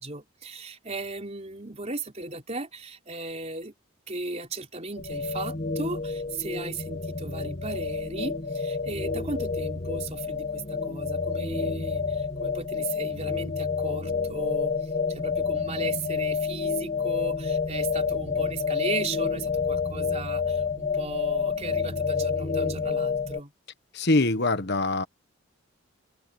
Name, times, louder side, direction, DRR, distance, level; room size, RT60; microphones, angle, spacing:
voice 1, 0.0-3.7 4.1-23.5, right 3 dB, 30° right, 4.2 m, -36 dB
sound 1, 5.0-23.4, left 5 dB, 35° left, 1.6 m, -29 dB
voice 2, 23.9-25.0, left 2 dB, 50° left, 1.3 m, -23 dB
head